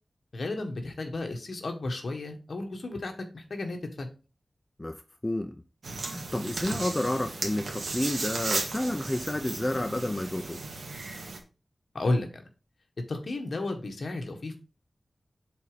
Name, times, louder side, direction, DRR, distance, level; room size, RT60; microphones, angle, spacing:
voice 1, 0.3-4.1 11.9-12.4 13.1-14.6, left 2 dB, 60° left, 1.6 m, -33 dB
voice 2, 4.8-5.5 6.0-10.6, left 1 dB, 20° left, 0.5 m, -30 dB
sound 1, 5.8-11.4, right 3 dB, 85° right, 1.6 m, -35 dB
7.0 x 4.1 x 5.0 m
wide cardioid pair, 105°, 0 cm